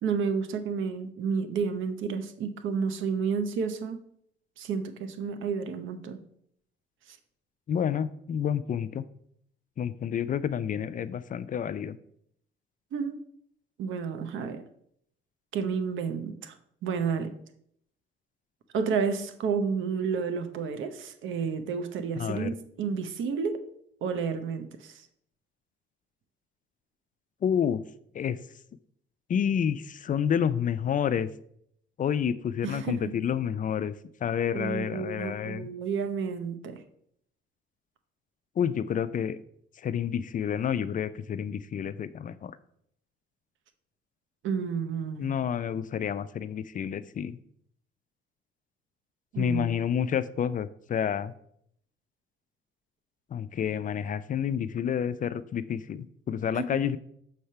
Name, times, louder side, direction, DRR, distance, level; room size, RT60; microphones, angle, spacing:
voice 1, 0.0-4.0 4.6-6.2 7.1-7.2 12.9-13.2 13.8-14.6 15.5-16.5 16.8-17.3 18.7-23.7 24.0-25.1 32.6-33.1 34.5-36.8 44.4-45.3 49.3-49.7 56.5-56.8, right 6 dB, 75° right, 9 dB, 0.8 m, -31 dB
voice 2, 7.7-9.0 9.8-12.0 22.2-22.5 27.4-27.8 28.1-28.4 29.3-31.3 32.0-33.9 34.2-35.7 38.6-39.4 39.8-42.6 45.2-47.4 49.4-51.3 53.3-57.0, left 8 dB, 40° left, 15 dB, 0.4 m, -29 dB
6.5 x 3.3 x 5.5 m, 0.70 s
cardioid pair, 90°, 20 cm